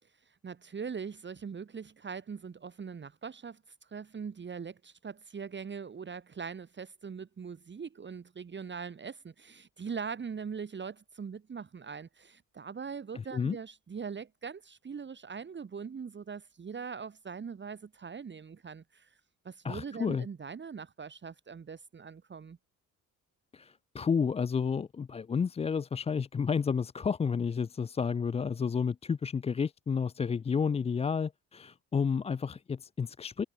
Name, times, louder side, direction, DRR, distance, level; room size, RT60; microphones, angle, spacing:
voice 1, 0.3-19.2 19.4-22.6, right 6 dB, 35° right, 1.6 m, -41 dB
voice 2, 19.6-20.3 23.5-33.4, left 6 dB, 20° left, 0.4 m, -31 dB
cardioid pair, 75°, 32 cm